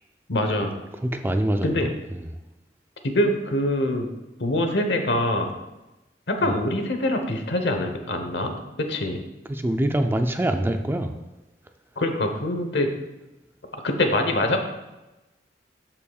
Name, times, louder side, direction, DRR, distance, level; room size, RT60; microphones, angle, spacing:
voice 1, 0.3-0.7 1.6-1.9 3.0-4.1 4.4-5.6 6.3-9.2 12.0-12.9 13.7-14.7, left 1 dB, 70° left, 5 dB, 1.0 m, -24 dB
voice 2, 1.0-2.3 9.5-11.1, right 1 dB, 15° right, 6 dB, 0.4 m, -25 dB
13.0 x 5.6 x 2.4 m, 1.0 s
head